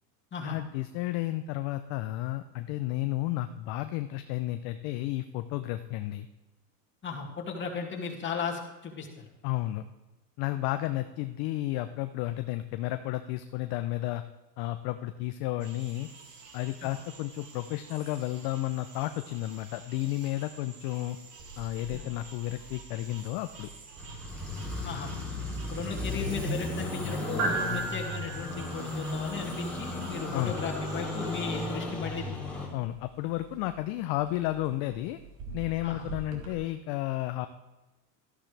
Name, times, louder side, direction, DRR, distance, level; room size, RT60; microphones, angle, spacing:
voice 1, 0.4-6.3 9.4-9.8 10.4-14.2 14.6-16.1 16.5-21.2 21.6-23.7 30.3-30.6 32.7-35.2 35.5-37.5, left 16 dB, 50° left, 9 dB, 0.6 m, -32 dB
voice 2, 7.0-9.2 16.8-16.9 21.9-22.1 24.8-25.1 25.7-32.4 35.8-36.1, left 5 dB, 25° left, -1 dB, 2.3 m, -36 dB
sound 1, 15.6-31.7, right 4 dB, 70° right, 2.6 m, -50 dB
sound 2, 21.4-36.5, right 3 dB, 45° right, 2.5 m, -41 dB
sound 3, 24.0-32.7, left 2 dB, ahead, 3.0 m, -35 dB
13.0 x 12.0 x 3.4 m, 1.1 s
supercardioid pair, 120°, 49 cm